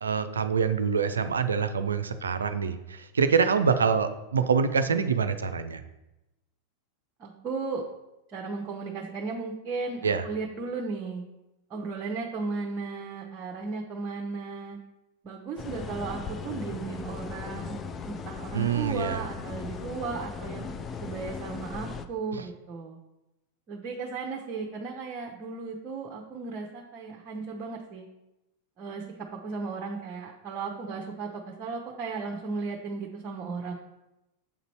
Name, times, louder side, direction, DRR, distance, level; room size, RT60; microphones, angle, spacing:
voice 1, 0.0-5.8 10.0-10.2 18.5-19.2 22.3-22.4, right 6 dB, 70° right, 9 dB, 0.4 m, -25 dB
voice 2, 7.2-7.8 8.3-11.2 11.7-14.8 15.2-17.8 18.1-20.7 21.0-23.0 23.7-28.0 28.8-29.0 29.4-33.7, right 4 dB, 30° right, 1 dB, 0.7 m, -35 dB
sound 1, 15.6-22.1, left 5 dB, 25° left, 0.4 m, -38 dB
7.1 x 4.0 x 4.4 m, 0.96 s
figure-of-eight pair, 90°, 0 cm